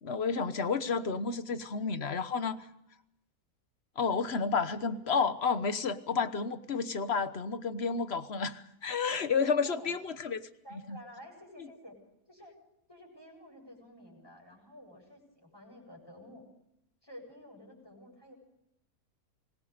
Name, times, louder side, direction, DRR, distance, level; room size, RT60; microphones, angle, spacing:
voice 1, 0.0-2.7 4.0-10.5 10.9-11.0, left 5 dB, 45° left, 12 dB, 1.3 m, -31 dB
voice 2, 9.1-10.0 10.6-12.0 12.3-12.5 12.9-16.5 17.0-18.3, equal, 15° left, -2 dB, 8.0 m, -51 dB
26.0 x 20.5 x 5.1 m, 0.83 s
omnidirectional pair, 1.6 m